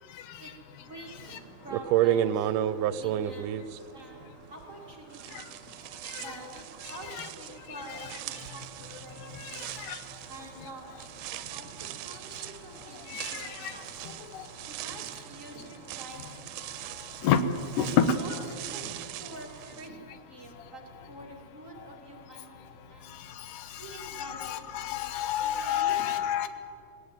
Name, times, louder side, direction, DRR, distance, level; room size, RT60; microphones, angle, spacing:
voice 1, 0.4-5.7 6.1-9.7 10.3-14.3 14.7-16.9 18.1-18.3 18.7-18.9 19.2-20.8 21.1-23.2 23.7-24.9 25.4-26.1, right 1 dB, 25° right, -1 dB, 2.6 m, -47 dB
sound 1, 1.2-1.3 1.7-4.8 5.1-19.9, right 11 dB, 85° right, 2.2 m, -34 dB
voice 2, 13.1-13.7 17.2-17.4 17.8-18.2 24.0-26.5, left 8 dB, 85° left, 11 dB, 2.6 m, -28 dB
19.0 x 18.5 x 9.0 m, 2.6 s
omnidirectional pair, 3.6 m